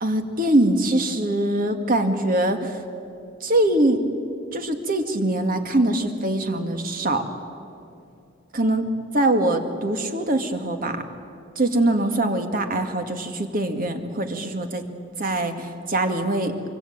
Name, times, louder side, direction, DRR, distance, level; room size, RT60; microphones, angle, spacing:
voice 1, 0.0-2.8 3.4-4.0 4.5-7.3 8.5-8.8 9.1-11.0 11.6-14.8 15.2-16.5, right 1 dB, 50° right, 6 dB, 2.2 m, -23 dB
24.5 x 24.5 x 8.9 m, 2.5 s
head